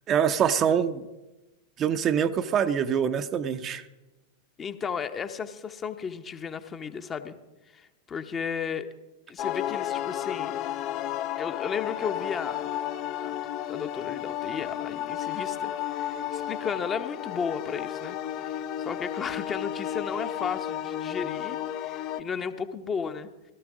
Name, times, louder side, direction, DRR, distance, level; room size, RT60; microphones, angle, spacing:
voice 1, 0.1-1.0 1.8-3.8, right 8 dB, 30° right, 9 dB, 0.6 m, -24 dB
voice 2, 4.6-7.4 7.7-8.9 9.3-10.6 11.4-12.6 13.2-13.4 13.7-23.3, left 6 dB, 25° left, 9 dB, 0.8 m, -34 dB
sound 1, 9.4-22.2, left 11 dB, 40° left, 0.4 m, -33 dB
16.5 x 13.0 x 3.7 m, 1.1 s
figure-of-eight pair, 90°, 0 cm